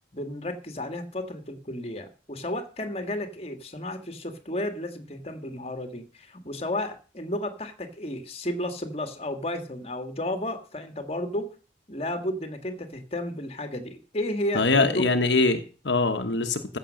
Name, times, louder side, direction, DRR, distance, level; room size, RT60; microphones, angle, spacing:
voice 1, 0.1-11.5 11.9-15.2, left 1 dB, 35° left, 7 dB, 1.8 m, -33 dB
voice 2, 14.5-16.8, left 3 dB, 80° left, 7 dB, 1.2 m, -23 dB
15.0 x 6.9 x 6.5 m, 0.37 s
head